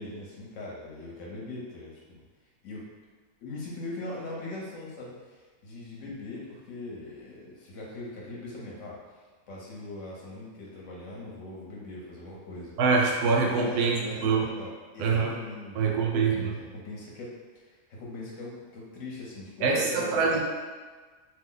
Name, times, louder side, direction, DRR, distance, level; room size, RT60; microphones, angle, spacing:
voice 1, 0.0-2.2 2.6-2.8 3.4-9.0 9.5-12.8 13.4-20.4, left 2 dB, 60° left, -4 dB, 1.0 m, -40 dB
voice 2, 12.8-14.5 15.0-15.4 15.7-16.5 19.6-20.4, right 4 dB, 80° right, 0 dB, 1.1 m, -24 dB
2.8 x 2.0 x 3.7 m, 1.4 s
omnidirectional pair, 1.6 m